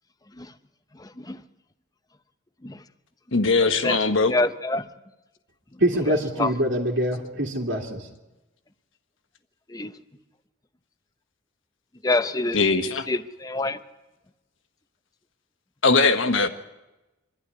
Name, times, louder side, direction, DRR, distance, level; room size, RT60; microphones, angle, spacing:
voice 1, 0.9-1.4 2.6-2.8 3.6-4.0 4.3-4.9 5.7-5.8 6.1-6.5 9.7-9.9 12.0-13.8, left 2 dB, 20° left, 11 dB, 0.7 m, -27 dB
voice 2, 3.3-4.3 12.5-13.1 15.8-16.5, left 3 dB, 75° left, 7 dB, 1.3 m, -20 dB
voice 3, 5.8-8.0, right 1 dB, 65° right, -4 dB, 2.5 m, -24 dB
25.0 x 12.0 x 9.7 m, 1.0 s
head